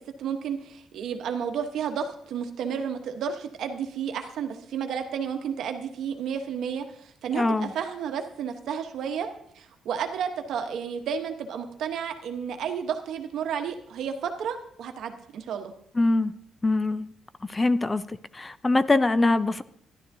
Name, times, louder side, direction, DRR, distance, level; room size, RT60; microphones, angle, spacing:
voice 1, 0.2-9.3 9.5-15.7, right 7 dB, 75° right, 6 dB, 1.0 m, -32 dB
voice 2, 7.3-7.7 16.0-16.3 16.6-17.1 17.5-19.6, left 2 dB, 20° left, 15 dB, 0.4 m, -23 dB
12.5 x 11.0 x 2.7 m, 0.70 s
cardioid pair, 90°, 0 cm